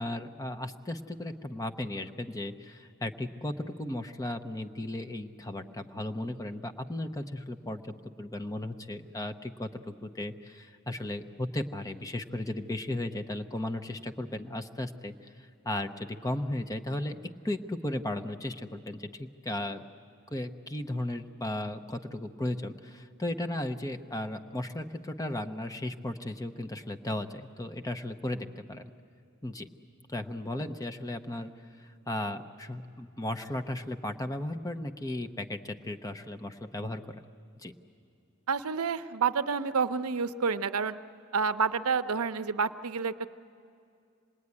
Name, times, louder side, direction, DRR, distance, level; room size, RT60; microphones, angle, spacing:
voice 1, 0.0-17.2 17.4-19.8 20.3-28.9 29.4-29.7 30.1-31.5 31.8-37.0 37.6-37.7, left 1 dB, 15° left, 7 dB, 0.8 m, -35 dB
voice 2, 38.5-41.0 41.3-43.3, right 5 dB, 85° right, 11 dB, 0.7 m, -29 dB
26.5 x 20.0 x 9.7 m, 2.5 s
head